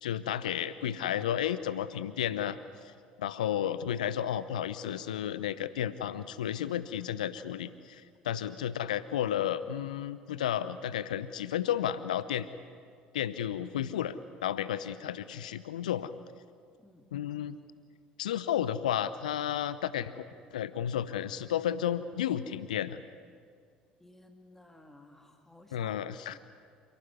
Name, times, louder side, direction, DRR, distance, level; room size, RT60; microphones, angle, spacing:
voice 1, 0.0-2.9 3.2-12.5 13.1-14.1 14.4-16.1 17.1-17.6 18.2-20.2 20.5-23.0 25.7-26.4, left 10 dB, 75° left, 15 dB, 0.7 m, -32 dB
voice 2, 24.0-26.0 26.3-26.4, left 1 dB, 10° left, 4 dB, 2.7 m, -55 dB
28.0 x 18.0 x 9.6 m, 2.1 s
figure-of-eight pair, 60°, 4 cm